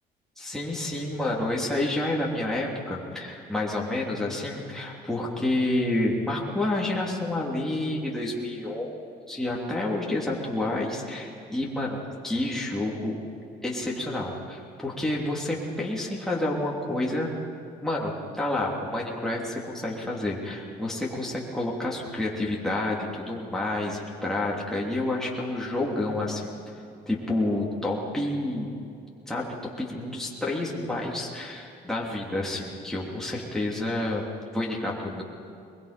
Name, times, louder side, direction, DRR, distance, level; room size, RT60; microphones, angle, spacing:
voice 1, 0.4-8.9 9.3-13.2 13.6-17.3 17.8-26.7 27.1-28.7 29.3-35.2, left 1 dB, 5° left, -4 dB, 3.1 m, -29 dB
22.0 x 22.0 x 5.2 m, 2.6 s
cardioid pair, 110°, 17 cm